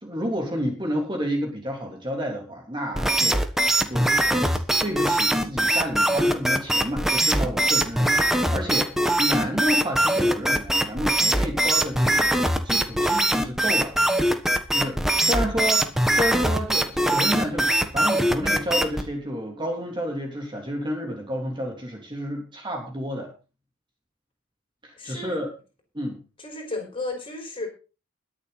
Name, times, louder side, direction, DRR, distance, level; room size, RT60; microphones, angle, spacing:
voice 1, 0.0-3.5 3.9-8.9 9.2-12.4 12.6-14.0 14.7-15.8 16.1-23.3 24.8-25.5 25.9-26.2, equal, 20° right, 1 dB, 3.5 m, -30 dB
sound 1, 3.0-19.1, right 1 dB, ahead, 1.2 m, -22 dB
voice 2, 15.2-15.9 25.0-25.4 26.4-27.7, left 2 dB, 25° left, 3 dB, 5.1 m, -35 dB
22.0 x 7.3 x 4.1 m, 0.33 s
head